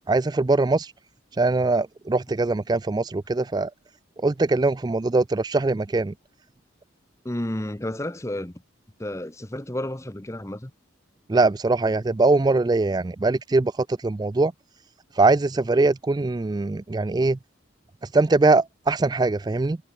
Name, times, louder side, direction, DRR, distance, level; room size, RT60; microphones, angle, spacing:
voice 1, 0.1-0.9 1.4-3.7 4.2-6.1 11.3-14.5 15.1-17.4 18.0-19.8, right 3 dB, 20° right, 0.3 m, -22 dB
voice 2, 7.2-8.6 9.0-10.7, left 1 dB, 15° left, 0.9 m, -31 dB
head